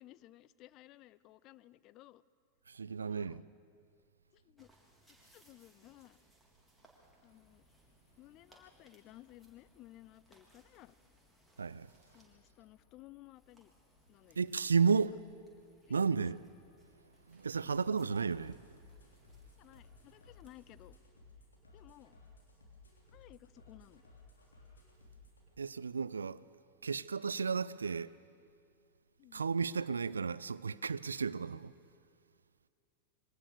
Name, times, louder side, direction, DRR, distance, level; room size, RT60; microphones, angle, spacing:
voice 1, 0.0-2.2 3.0-3.5 4.3-4.7 5.3-6.2 7.2-7.6 8.2-11.0 12.1-13.7 14.1-14.4 15.9-16.0 17.6-17.7 19.6-21.0 21.7-22.2 23.1-24.0 29.2-29.5, left 16 dB, 40° left, 0.5 m, -57 dB
voice 2, 2.7-3.4 11.6-11.9 14.3-15.2 15.9-16.4 17.0-18.6 25.6-26.4 26.8-28.1 29.3-31.7, right 5 dB, 75° right, 0.4 m, -33 dB
sound 1, 4.6-12.4 13.3-21.0, right 1 dB, ahead, 3.7 m, -69 dB
sound 2, 7.3-21.0, left 3 dB, 20° left, 3.1 m, -72 dB
sound 3, 18.1-25.5, left 3 dB, 75° left, 3.6 m, -59 dB
23.0 x 18.5 x 6.7 m
figure-of-eight pair, 90°, 0 cm